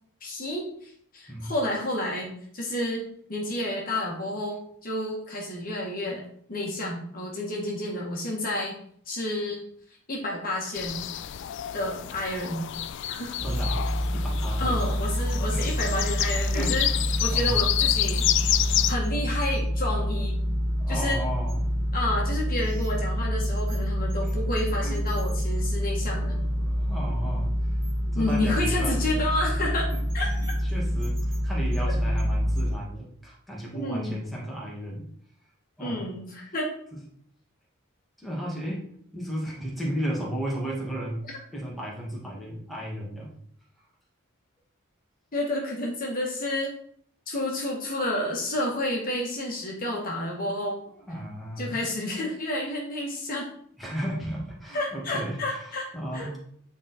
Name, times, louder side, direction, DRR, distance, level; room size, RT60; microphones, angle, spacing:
voice 1, 0.2-6.2 6.5-8.7 9.0-9.6 10.1-11.0 11.7-12.7 13.1-13.4 14.6-16.9 17.2-18.6 18.9-20.4 20.9-21.2 21.9-26.4 28.1-30.5 33.7-34.1 35.8-36.7 45.3-46.7 47.3-50.8 51.6-53.5 54.7-55.9 56.1-56.3, left 1 dB, 40° left, -1 dB, 1.7 m, -30 dB
sound 1, 10.7-18.9, left 13 dB, 60° left, 0.3 m, -29 dB
voice 2, 13.4-13.8 14.1-14.9 15.5-15.7 16.5-17.0 17.3-17.6 20.8-21.6 24.8-25.0 26.1-27.6 28.1-29.0 30.7-35.0 35.8-36.0 36.9-37.0 38.2-38.8 39.1-41.3 41.5-43.3 51.1-51.8 53.8-56.4, right 1 dB, ahead, -5 dB, 2.0 m, -34 dB
sound 2, 13.4-32.7, equal, 60° right, 2.2 m, -27 dB
9.2 x 4.2 x 4.3 m, 0.63 s
head